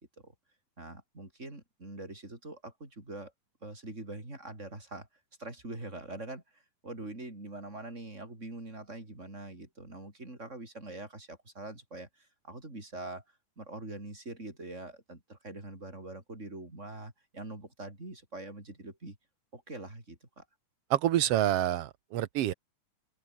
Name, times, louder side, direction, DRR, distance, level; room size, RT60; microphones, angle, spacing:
voice 1, 0.8-3.3 3.6-5.1 5.4-13.2 13.6-19.2 19.5-20.4, right 2 dB, 20° right, 6.4 m, -44 dB
voice 2, 20.9-22.5, right 13 dB, 80° right, 1.3 m, -27 dB
omnidirectional pair, 4.1 m